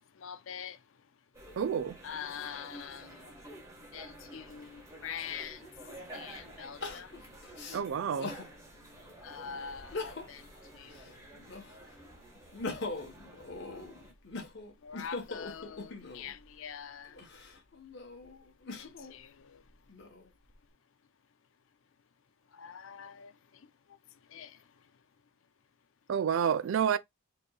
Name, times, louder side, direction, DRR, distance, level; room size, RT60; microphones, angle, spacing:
voice 1, 0.2-0.8 2.0-3.3 3.9-5.7 6.1-7.2 9.2-11.1 14.8-17.2 18.7-19.6 22.5-23.3 24.3-24.6, left 7 dB, 75° left, 0.5 m, -44 dB
sound 1, 1.3-14.1, right 1 dB, 15° right, 1.3 m, -51 dB
voice 2, 1.6-2.0 7.7-8.3 26.1-27.0, right 8 dB, 75° right, 0.4 m, -29 dB
Crying sobbing, 5.5-5.6 6.8-8.5 9.0-9.1 9.8-10.5 10.9-11.9 12.3-16.4 17.1-19.1 19.7-20.5, left 3 dB, 55° left, 1.1 m, -41 dB
5.1 x 3.0 x 2.3 m
head